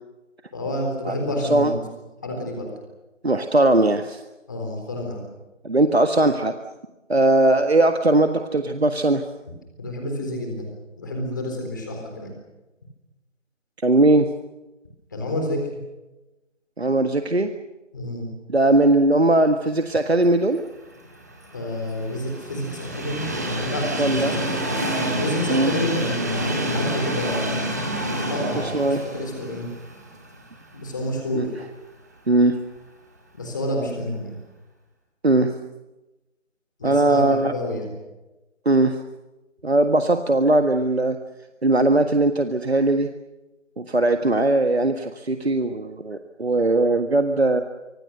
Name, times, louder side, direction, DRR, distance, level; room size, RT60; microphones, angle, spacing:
voice 1, 0.5-1.8 2.2-2.7 4.5-5.2 9.8-10.7 11.0-12.3 15.1-15.6 17.9-18.3 21.5-23.3 23.6-24.8 25.2-27.7 28.3-28.7 29.0-29.7 30.7-31.5 33.3-34.3 36.8-37.9, left 1 dB, 15° left, 2 dB, 3.9 m, -29 dB
voice 2, 1.4-1.7 3.2-4.2 5.6-6.5 7.1-9.2 13.8-14.3 16.8-17.5 18.5-20.6 24.0-24.3 25.5-25.7 28.6-29.0 31.4-31.5 32.3-32.6 35.2-35.5 36.8-37.5 38.7-39.0 39.6-41.2 41.6-43.1 43.8-47.6, right 2 dB, 55° right, 7 dB, 1.6 m, -19 dB
Train, 20.9-31.0 31.4-31.5 32.6-32.7, right 1 dB, 15° right, 2.0 m, -28 dB
25.5 x 25.0 x 6.6 m, 1.0 s
figure-of-eight pair, 170°, 38 cm